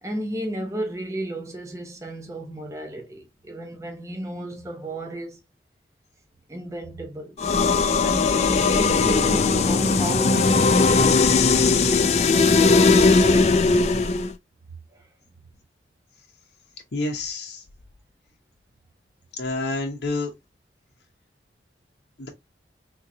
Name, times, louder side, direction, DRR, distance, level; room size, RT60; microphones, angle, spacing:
voice 1, 0.0-5.4 6.5-7.4 8.0-11.5 11.8-12.2 12.5-13.9 14.9-15.1, right 1 dB, 15° right, 0.8 m, -33 dB
sound 1, 7.4-14.3, left 4 dB, 40° left, 0.3 m, -18 dB
voice 2, 16.9-17.6 19.4-20.3 22.2-22.3, left 2 dB, 75° left, 0.7 m, -28 dB
3.7 x 2.9 x 2.5 m
head